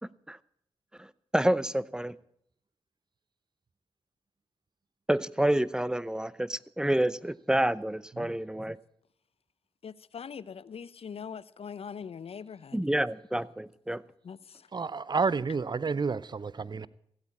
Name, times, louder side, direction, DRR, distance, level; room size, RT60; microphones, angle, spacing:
voice 1, 0.0-0.4 1.0-2.2 5.1-8.8 12.7-14.0, right 1 dB, 5° right, 0.7 m, -28 dB
voice 2, 9.8-12.8 14.2-14.6, left 6 dB, 65° left, 0.7 m, -42 dB
voice 3, 14.7-16.9, right 4 dB, 40° right, 0.6 m, -30 dB
15.5 x 8.7 x 8.5 m
supercardioid pair, 40°, 11 cm